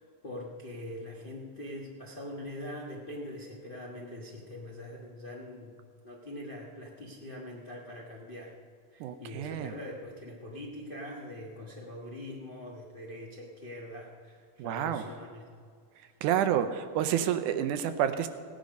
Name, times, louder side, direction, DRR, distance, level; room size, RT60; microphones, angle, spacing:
voice 1, 0.0-5.8 6.0-8.5 8.9-15.5, left 1 dB, 75° left, -3 dB, 0.4 m, -43 dB
voice 2, 9.0-9.7 14.6-15.0 16.2-18.3, right 10 dB, 85° right, 10 dB, 2.2 m, -29 dB
16.5 x 10.0 x 5.3 m, 2.1 s
omnidirectional pair, 3.6 m